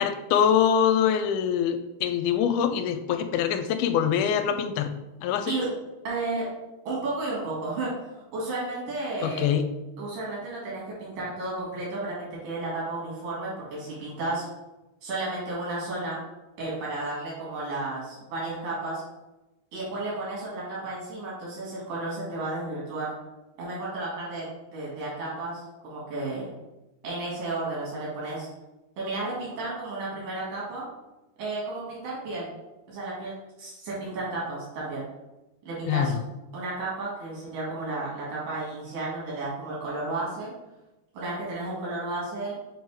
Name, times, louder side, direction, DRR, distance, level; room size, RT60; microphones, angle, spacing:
voice 1, 0.0-4.9 5.2-5.5 9.2-9.6 35.9-36.2, left 8 dB, 85° left, 7 dB, 2.0 m, -24 dB
voice 2, 6.0-6.5 6.9-9.5 10.0-14.5 15.0-16.2 16.6-19.0 19.7-23.1 23.6-26.5 27.0-28.5 29.0-30.9 31.4-32.5 32.9-35.1 35.7-36.1 36.5-40.5 41.1-42.6, right 2 dB, 85° right, -6 dB, 3.7 m, -33 dB
6.6 x 3.2 x 4.7 m, 1.0 s
omnidirectional pair, 3.6 m